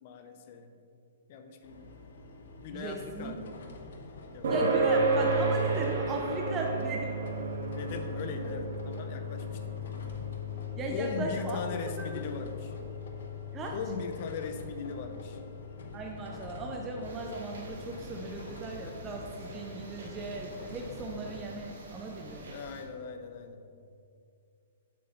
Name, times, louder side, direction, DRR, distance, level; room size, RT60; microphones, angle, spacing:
voice 1, 0.0-0.7 1.3-1.9 2.6-3.4 4.3-4.5 7.8-9.8 10.9-12.7 13.7-15.4 22.5-23.6, left 5 dB, 35° left, 7 dB, 0.5 m, -39 dB
sound 1, 1.6-21.5, left 2 dB, 60° left, 0.9 m, -47 dB
voice 2, 2.7-3.4 4.5-7.2 10.8-11.6 12.0-12.1 13.5-13.8 15.9-22.5, right 3 dB, 15° right, 0 dB, 0.4 m, -37 dB
sound 2, 4.4-19.3, right 2 dB, 65° right, 1.6 m, -34 dB
sound 3, 17.0-22.8, right 2 dB, 85° right, 1.8 m, -48 dB
7.5 x 5.5 x 4.1 m, 2.4 s
hypercardioid pair, 175°, 0 cm